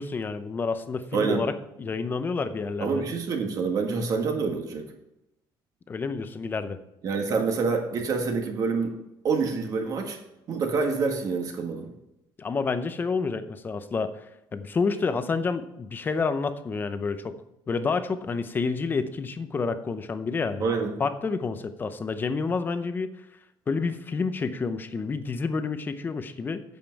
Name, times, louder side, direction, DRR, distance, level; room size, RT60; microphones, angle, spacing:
voice 1, 0.0-1.5 1.8-3.0 5.9-6.8 12.4-17.3 17.7-20.7 21.0-23.1 23.7-26.6, left 4 dB, 20° left, 11 dB, 0.7 m, -29 dB
voice 2, 1.1-1.4 2.8-4.8 7.0-9.0 9.2-10.2 10.5-11.9 20.6-20.9, right 4 dB, 45° right, 3 dB, 1.6 m, -27 dB
8.9 x 7.4 x 4.5 m, 0.88 s
cardioid pair, 175°, 9 cm